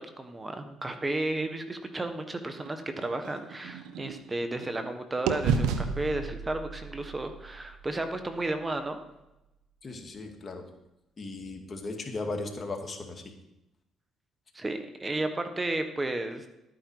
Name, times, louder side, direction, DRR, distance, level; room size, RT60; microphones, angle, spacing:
voice 1, 0.2-9.0 14.5-16.4, right 2 dB, 20° right, 8 dB, 1.5 m, -33 dB
sound 1, 2.6-4.9 5.3-9.2, right 6 dB, 85° right, 1.0 m, -33 dB
voice 2, 9.8-10.7 11.2-13.2, left 3 dB, 35° left, 3 dB, 2.2 m, -37 dB
12.5 x 9.4 x 4.9 m, 0.93 s
supercardioid pair, 80°, 0 cm